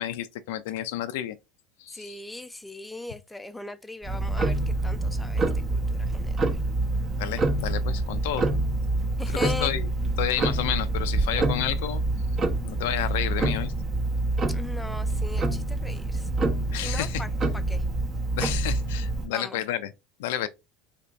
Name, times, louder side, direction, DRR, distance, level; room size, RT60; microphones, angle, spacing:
voice 1, 0.0-1.4 1.8-2.2 7.2-8.5 9.4-9.9 10.2-12.0 12.6-13.7 16.7-17.2 18.3-19.9 20.2-20.5, left 12 dB, 80° left, 0.4 m, -30 dB
voice 2, 1.9-6.6 9.2-9.7 14.5-16.3 16.8-17.8 19.3-19.6 20.4-20.5, left 2 dB, 5° left, 0.4 m, -39 dB
Tick-tock, 4.0-19.3, right 2 dB, 35° right, 0.8 m, -26 dB
2.9 x 2.6 x 3.3 m
supercardioid pair, 105°, 0 cm